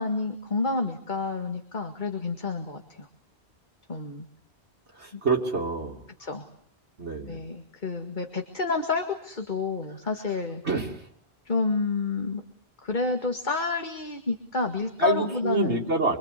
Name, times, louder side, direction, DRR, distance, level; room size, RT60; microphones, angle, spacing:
voice 1, 0.0-3.1 3.9-4.3 5.1-5.2 6.2-6.4 7.3-10.6 11.5-12.4 12.8-15.9, left 4 dB, 45° left, 5 dB, 2.2 m, -29 dB
voice 2, 4.9-6.0 7.0-7.4 10.6-11.1 15.0-16.2, right 3 dB, 90° right, -1 dB, 2.9 m, -27 dB
26.0 x 24.5 x 8.3 m, 0.63 s
omnidirectional pair, 1.1 m